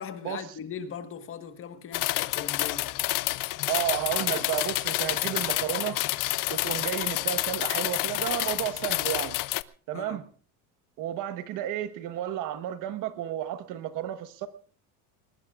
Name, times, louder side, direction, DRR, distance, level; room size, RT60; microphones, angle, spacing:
voice 1, 0.0-3.0 9.9-10.2, left 7 dB, 35° left, 1.4 m, -39 dB
sound 1, 1.9-9.6, left 20 dB, 55° left, 0.7 m, -29 dB
voice 2, 3.7-6.0 6.5-9.4 9.9-10.2 11.0-14.5, right 11 dB, 55° right, 1.3 m, -32 dB
sound 2, 4.5-5.7 6.7-7.0 9.2-9.3, equal, ahead, 3.6 m, -49 dB
22.5 x 20.0 x 2.5 m
cardioid pair, 140°, 38 cm